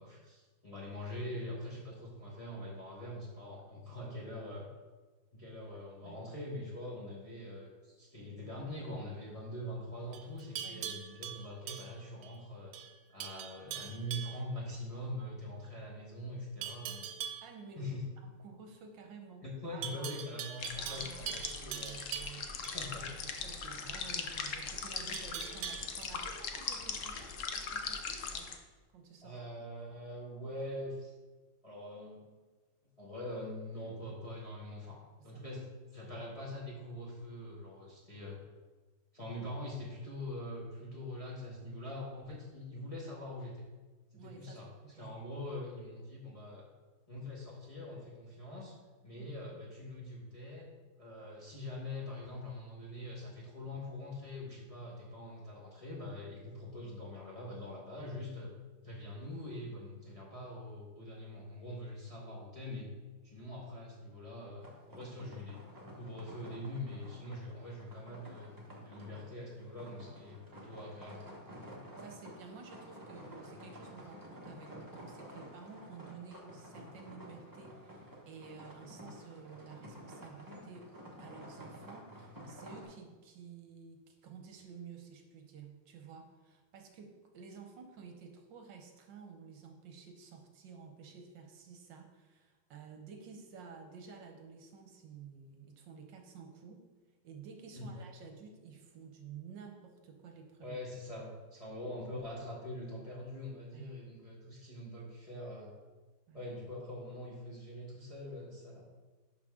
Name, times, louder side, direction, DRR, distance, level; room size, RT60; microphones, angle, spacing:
voice 1, 0.0-4.7 5.3-12.7 13.1-17.1 17.8-18.0 19.4-22.0 22.7-23.1 29.2-31.1 31.6-32.3 33.0-38.4 39.1-43.6 44.1-44.7 45.0-46.6 47.1-48.8 49.0-50.7 51.0-58.5 58.8-62.9 63.2-65.6 65.9-68.5 68.8-71.2 97.7-97.9 100.6-105.7 106.3-108.8, left 1 dB, 20° left, -5 dB, 1.1 m, -43 dB
Livestock farm animals working animals, 10.1-12.4 12.7-12.9 13.2-14.4 16.6-17.5 19.8-22.8 25.1-26.0, right 9 dB, 90° right, 1.4 m, -42 dB
voice 2, 17.4-17.9 18.2-19.4 19.7-20.1 20.8-22.8 23.0-28.5 28.9-29.4 35.3-35.6 44.1-45.2 49.1-49.3 65.0-65.3 71.8-80.9 81.2-96.8 97.2-100.8 102.4-102.5 103.7-104.0 106.3-106.5, right 6 dB, 70° right, 4 dB, 1.4 m, -52 dB
sound 1, 20.6-28.6, left 5 dB, 80° left, 0.6 m, -40 dB
sound 2, 64.6-82.8, equal, 15° right, 0.9 m, -51 dB
11.0 x 4.4 x 3.7 m, 1.3 s
omnidirectional pair, 2.2 m